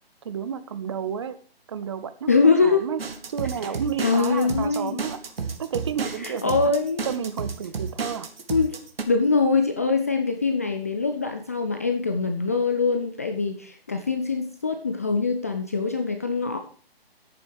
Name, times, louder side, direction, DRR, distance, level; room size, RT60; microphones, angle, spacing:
voice 1, 0.2-1.4 1.7-3.0 3.3-5.2 5.6-6.7 7.0-8.3, right 7 dB, 30° right, 13 dB, 0.6 m, -31 dB
voice 2, 2.3-2.9 4.0-5.0 6.2-7.1 8.5-8.8 9.1-16.6, left 4 dB, 15° left, 6 dB, 0.4 m, -23 dB
sound 1, 3.0-9.0, right 5 dB, 70° right, 1.9 m, -32 dB
11.0 x 8.7 x 4.7 m, 0.43 s
figure-of-eight pair, 150°, 31 cm